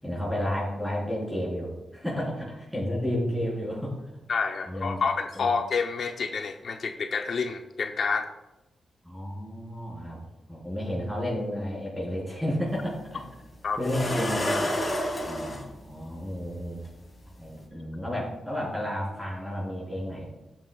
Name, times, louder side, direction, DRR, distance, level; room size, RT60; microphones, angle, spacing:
voice 1, 0.0-3.9 4.7-5.1 5.3-5.5 9.0-10.2 10.5-13.2 13.8-14.6 15.3-16.8 17.4-20.3, equal, ahead, -5 dB, 3.8 m, -31 dB
voice 2, 4.3-8.3 13.6-13.9, left 5 dB, 65° left, 6 dB, 0.7 m, -28 dB
sound 1, 12.7-12.8 13.8-15.6 16.8-16.9 17.5-17.6, left 1 dB, 35° left, 3.6 m, -29 dB
15.0 x 8.9 x 2.3 m, 1.0 s
cardioid pair, 100°, 0 cm